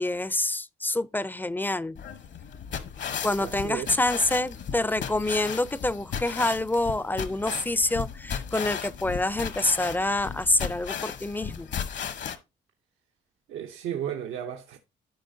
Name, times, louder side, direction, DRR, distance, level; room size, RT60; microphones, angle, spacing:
voice 1, 0.0-2.0 3.2-11.7, left 2 dB, 10° left, 0.4 m, -27 dB
sound 1, 2.0-12.4, left 7 dB, 65° left, 1.0 m, -35 dB
voice 2, 3.4-4.0 13.5-14.8, right 10 dB, 90° right, 0.8 m, -34 dB
13.5 x 4.9 x 2.6 m
cardioid pair, 90°, 20 cm